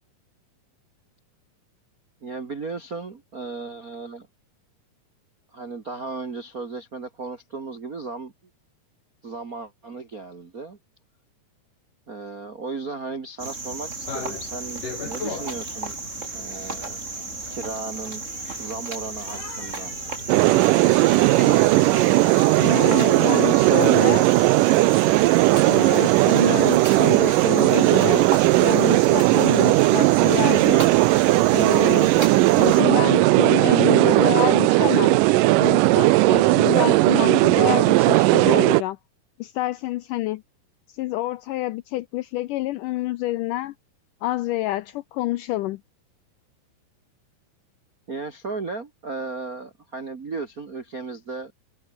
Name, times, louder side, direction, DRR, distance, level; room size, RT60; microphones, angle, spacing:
voice 1, 2.2-4.3 5.5-8.3 9.2-10.8 12.1-16.0 16.3-17.0 17.5-18.2 18.6-19.9 21.1-21.8 48.1-51.5, right 4 dB, 55° right, 1.0 m, -35 dB
Cricket, 13.4-32.8, right 3 dB, 20° right, 3.1 m, -34 dB
sound 1, 14.0-22.7, left 5 dB, 55° left, 6.6 m, -40 dB
sound 2, 20.3-38.8, right 19 dB, 85° right, 2.0 m, -17 dB
voice 2, 22.6-24.3 25.6-30.9 31.5-32.2 32.5-35.2 35.5-39.0 39.4-40.4 40.9-43.7 44.2-45.8, left 16 dB, 80° left, 1.9 m, -28 dB
omnidirectional pair, 4.3 m